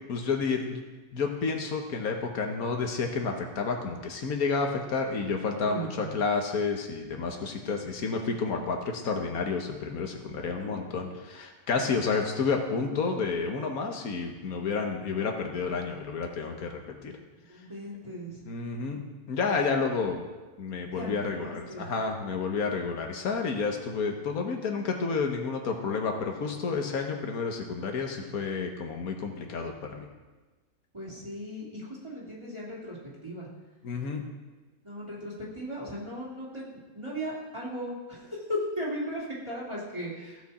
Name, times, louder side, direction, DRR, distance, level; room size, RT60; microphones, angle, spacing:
voice 1, 0.1-0.8 1.1-17.1 18.5-19.0 19.3-20.2 20.6-30.1 33.8-34.2, left 4 dB, 85° left, 3 dB, 1.6 m, -30 dB
voice 2, 5.6-6.1 10.4-10.9 17.5-18.4 20.9-21.9 30.9-33.0 33.2-33.5 34.8-40.4, equal, 20° right, -7 dB, 2.9 m, -37 dB
16.0 x 6.2 x 4.2 m, 1.2 s
omnidirectional pair, 1.5 m